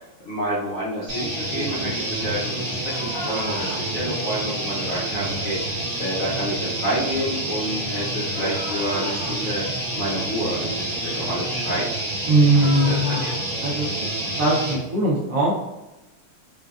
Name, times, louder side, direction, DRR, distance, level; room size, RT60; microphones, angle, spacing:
voice 1, 0.2-11.9 12.8-13.4, equal, 65° left, -6 dB, 0.8 m, -29 dB
sound 1, 1.1-14.8, right 1 dB, 45° right, 1.3 m, -28 dB
sound 2, 2.8-3.8 8.3-9.3 12.4-13.3, left 1 dB, 85° left, 1.8 m, -35 dB
voice 2, 12.3-13.2 13.6-13.9 14.4-15.5, right 2 dB, 80° right, -7 dB, 0.7 m, -19 dB
4.9 x 2.2 x 2.3 m, 0.99 s
omnidirectional pair, 2.4 m